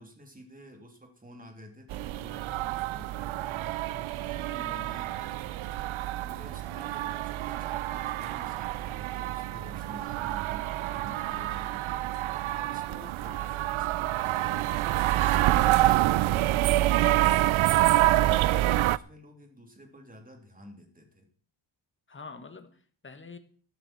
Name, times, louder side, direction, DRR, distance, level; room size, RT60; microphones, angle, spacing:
voice 1, 0.0-21.3, equal, 15° right, 3 dB, 3.2 m, -50 dB
sound 1, 1.9-19.0, right 15 dB, 80° right, 0.6 m, -27 dB
voice 2, 4.6-4.9 22.1-23.4, left 4 dB, 25° left, 8 dB, 1.7 m, -46 dB
14.5 x 12.5 x 4.4 m, 0.44 s
wide cardioid pair, 145°, 47 cm